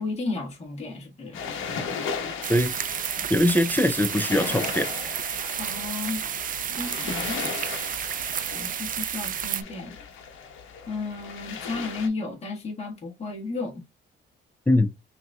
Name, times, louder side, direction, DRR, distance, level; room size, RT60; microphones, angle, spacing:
voice 1, 0.0-1.4 5.6-6.2 6.8-7.4 8.5-10.0 10.9-13.8, left 3 dB, 30° left, 1.6 m, -33 dB
sound 1, 1.3-12.1, left 6 dB, 85° left, 1.0 m, -36 dB
sound 2, 2.4-9.6, right 9 dB, 45° right, 0.4 m, -31 dB
voice 2, 3.3-4.9 14.7-14.9, left 1 dB, 10° left, 0.5 m, -21 dB
5.7 x 2.8 x 2.3 m
cardioid pair, 90°, 20 cm